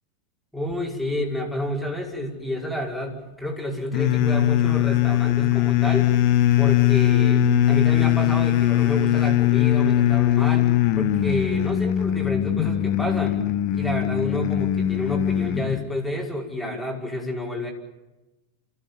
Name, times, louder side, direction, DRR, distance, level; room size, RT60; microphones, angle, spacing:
voice 1, 0.5-6.1 6.6-13.4 13.7-17.7, left 1 dB, ahead, -2 dB, 5.3 m, -29 dB
sound 1, 3.9-15.8, left 12 dB, 45° left, 1.3 m, -20 dB
29.0 x 16.0 x 7.1 m, 1.0 s
figure-of-eight pair, 90°, 0 cm